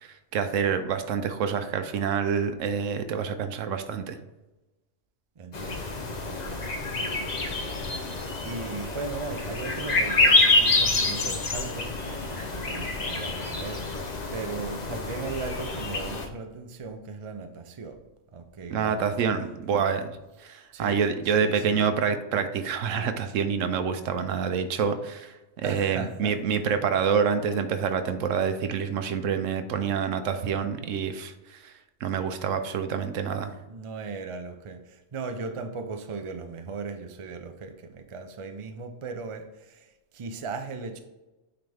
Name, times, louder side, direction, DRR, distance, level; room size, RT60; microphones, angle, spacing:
voice 1, 0.0-4.2 18.7-20.1 20.4-31.7 32.0-33.5, right 6 dB, 80° right, 9 dB, 1.0 m, -27 dB
voice 2, 5.4-18.0 18.3-19.3 19.7-19.9 20.7-21.0 21.2-21.9 25.6-26.4 33.7-41.0, right 4 dB, 40° right, 6 dB, 0.5 m, -38 dB
sound 1, 5.5-16.3, left 3 dB, 40° left, 0.7 m, -27 dB
9.3 x 4.0 x 3.4 m, 1.1 s
omnidirectional pair, 1.3 m